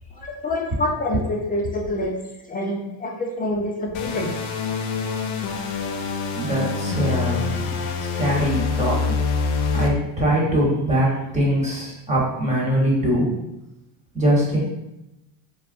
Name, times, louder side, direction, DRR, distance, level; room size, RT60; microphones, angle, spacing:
voice 1, 0.2-2.1 2.5-4.3, left 1 dB, 20° left, 0 dB, 0.6 m, -26 dB
sound 1, 3.9-9.9, left 5 dB, 70° left, 0.7 m, -25 dB
voice 2, 6.3-7.8 8.1-9.0 9.7-13.3 14.1-14.6, equal, 15° right, -5 dB, 1.3 m, -22 dB
3.9 x 2.2 x 2.6 m, 0.91 s
supercardioid pair, 95°, 46 cm